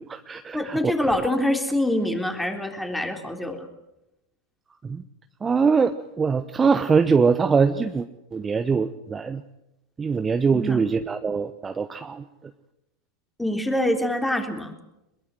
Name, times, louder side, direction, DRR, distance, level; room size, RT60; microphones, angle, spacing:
voice 1, 0.0-0.8 4.9-5.0 5.4-5.9 6.2-9.4 10.0-12.2, right 5 dB, 20° right, 10 dB, 1.0 m, -22 dB
voice 2, 0.5-3.7 10.5-10.8 13.4-14.8, left 1 dB, 5° left, 5 dB, 3.7 m, -25 dB
22.5 x 22.0 x 7.8 m, 0.90 s
figure-of-eight pair, 90°, 0 cm